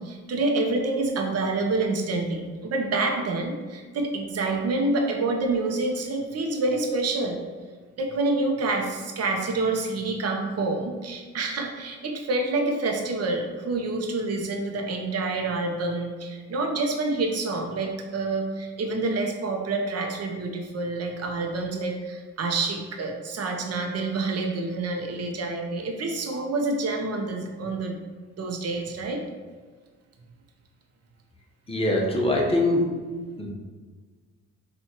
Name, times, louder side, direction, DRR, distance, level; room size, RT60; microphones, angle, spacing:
voice 1, 0.0-7.4 8.0-28.0 28.4-29.2, right 3 dB, 55° right, 2 dB, 0.9 m, -27 dB
voice 2, 31.7-32.9 33.4-33.5, left 1 dB, 20° left, -2 dB, 1.0 m, -23 dB
4.4 x 2.6 x 4.5 m, 1.5 s
cardioid pair, 90°, 30 cm